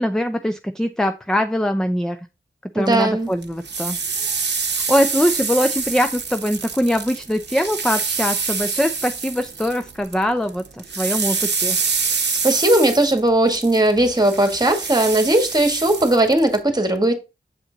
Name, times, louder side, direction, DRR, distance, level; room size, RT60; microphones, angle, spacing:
voice 1, 0.0-2.2 2.7-4.0 4.9-11.8, equal, 5° left, 0.5 m, -22 dB
voice 2, 2.8-3.3 12.4-17.1, right 1 dB, 20° right, 1.7 m, -18 dB
sound 1, 3.4-10.2 10.5-16.6, right 5 dB, 55° right, 0.9 m, -26 dB
7.2 x 4.3 x 3.9 m
cardioid pair, 50°, 21 cm